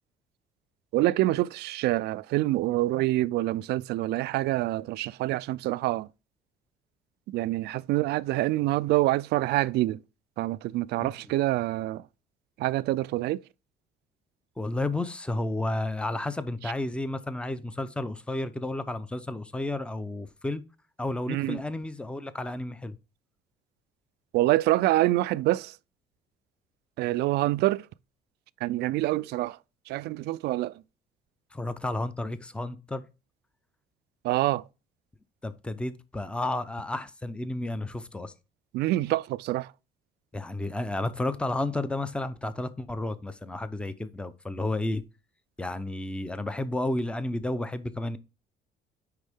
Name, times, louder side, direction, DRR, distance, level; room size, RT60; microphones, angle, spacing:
voice 1, 0.9-6.1 7.3-10.0 10.4-12.0 12.6-13.4 21.3-21.6 24.3-25.7 27.0-27.8 28.6-29.6 29.9-30.7 34.2-34.6 38.7-39.7, right 17 dB, 75° right, 0.4 m, -26 dB
voice 2, 14.6-20.6 21.0-23.0 31.5-33.0 35.4-38.3 40.3-45.0 45.6-48.2, left 2 dB, 5° left, 0.6 m, -32 dB
9.5 x 3.7 x 3.5 m
cardioid pair, 110°, 17 cm